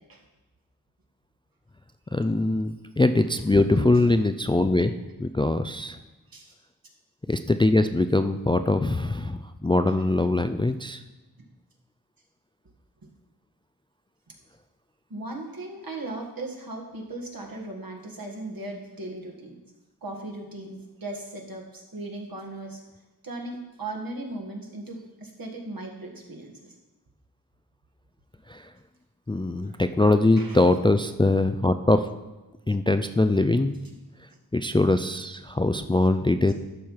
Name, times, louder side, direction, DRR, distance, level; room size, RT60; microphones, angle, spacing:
voice 1, 2.1-4.9 5.2-6.0 7.3-11.0 28.5-28.7 29.3-32.1 32.7-33.7 34.5-36.5, left 2 dB, 15° left, 9 dB, 0.3 m, -22 dB
voice 2, 15.1-19.6 20.0-22.8 23.2-26.5 29.6-29.8 30.4-30.6, right 2 dB, 65° right, 0 dB, 1.7 m, -37 dB
12.0 x 5.6 x 4.7 m, 1.1 s
wide cardioid pair, 70°, 37 cm